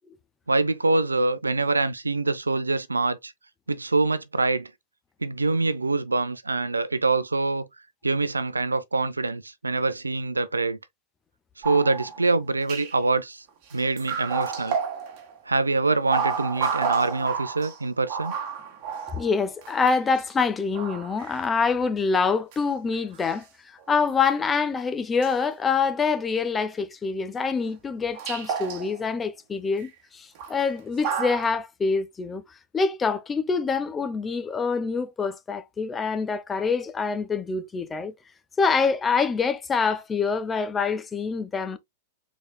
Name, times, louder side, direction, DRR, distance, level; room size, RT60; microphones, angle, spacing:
voice 1, 0.5-3.3 3.7-4.7 5.2-7.7 8.0-10.8 11.6-13.4 13.7-14.8 15.5-18.3, right 3 dB, 90° right, 0.5 m, -25 dB
sound 1, 11.6-12.3 12.7-13.0 13.7-15.4 15.9-20.0 20.7-21.4 22.5-22.6 22.9-23.3 23.8-23.9 25.2-25.3 27.6-27.7 28.1-29.1 29.8-29.9 30.4-30.7 31.0-31.5, right 6 dB, 45° right, 1.7 m, -30 dB
voice 2, 19.1-32.4 32.7-38.1 38.6-41.8, left 5 dB, 15° left, 0.7 m, -25 dB
4.8 x 4.1 x 2.2 m
figure-of-eight pair, 100°, 0 cm